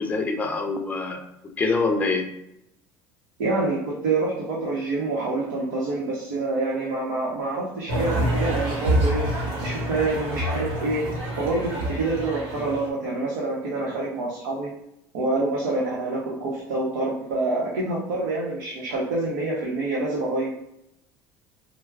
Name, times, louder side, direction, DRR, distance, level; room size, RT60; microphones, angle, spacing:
voice 1, 0.0-2.3, left 3 dB, 15° left, 4 dB, 0.5 m, -25 dB
voice 2, 3.4-14.7 15.1-20.6, right 2 dB, 85° right, -5 dB, 0.7 m, -27 dB
sound 1, 7.9-12.9, right 1 dB, 60° right, 1.2 m, -27 dB
4.4 x 2.0 x 2.3 m, 0.82 s
supercardioid pair, 90°, 9 cm